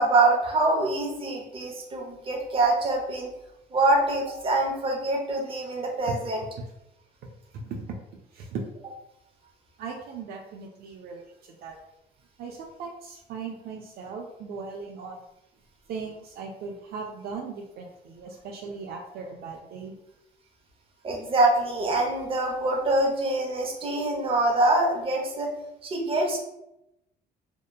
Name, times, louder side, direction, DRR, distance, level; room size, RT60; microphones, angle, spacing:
voice 1, 0.0-3.3 3.7-6.4 21.0-25.5 25.8-26.4, right 2 dB, 30° right, 0 dB, 0.7 m, -24 dB
voice 2, 7.5-8.0 8.3-8.6 9.8-11.8 12.4-15.2 15.9-20.0, right 5 dB, 65° right, 0 dB, 0.4 m, -38 dB
2.7 x 2.1 x 2.3 m, 0.86 s
cardioid pair, 110°, 17 cm